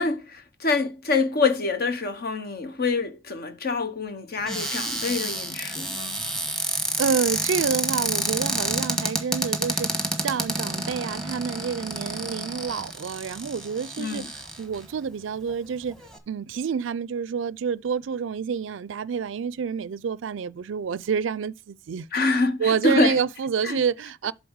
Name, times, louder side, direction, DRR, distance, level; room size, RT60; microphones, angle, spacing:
voice 1, 0.0-6.2 14.0-14.3 22.1-23.2 23.6-23.8, left 3 dB, 55° left, 1.0 m, -26 dB
Cupboard open or close, 4.4-14.8 15.5-15.6 15.8-16.2, right 1 dB, ahead, 1.3 m, -29 dB
voice 2, 7.0-15.9 16.3-22.1 22.6-24.3, right 6 dB, 70° right, 0.4 m, -28 dB
7.8 x 4.2 x 6.4 m
head